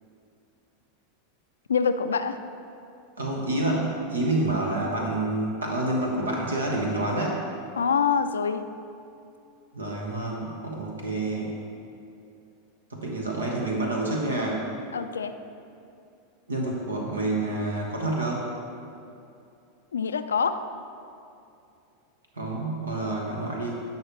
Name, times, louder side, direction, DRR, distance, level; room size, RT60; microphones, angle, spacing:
voice 1, 1.7-2.4 7.8-8.6 14.9-15.4 19.9-20.6, left 6 dB, 80° left, 10 dB, 0.3 m, -25 dB
voice 2, 3.2-7.4 9.7-11.6 12.9-14.7 16.5-18.5 22.4-23.8, right 2 dB, 80° right, -1 dB, 1.1 m, -28 dB
10.5 x 5.6 x 3.1 m, 2.6 s
figure-of-eight pair, 90°, 0 cm